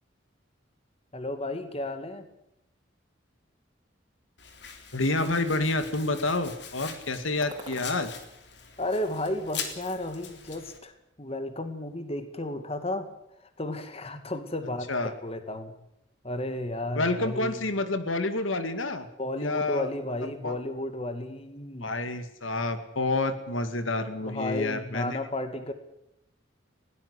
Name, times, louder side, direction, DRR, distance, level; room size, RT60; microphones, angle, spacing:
voice 1, 1.1-2.3 8.8-13.1 13.6-15.8 16.2-17.7 19.2-21.9 24.2-25.7, left 1 dB, 30° left, 9 dB, 2.2 m, -33 dB
Domestic sounds home sounds, 4.4-10.8, left 7 dB, 60° left, 3.5 m, -42 dB
voice 2, 4.9-8.2 14.9-15.1 17.0-19.1 19.4-19.9 20.4-20.6 21.8-25.2, left 2 dB, 85° left, 10 dB, 2.2 m, -28 dB
sound 1, 7.4-8.1 8.6-9.6 9.9-10.7, right 1 dB, 20° right, 5.1 m, -48 dB
21.0 x 18.0 x 8.2 m, 0.82 s
head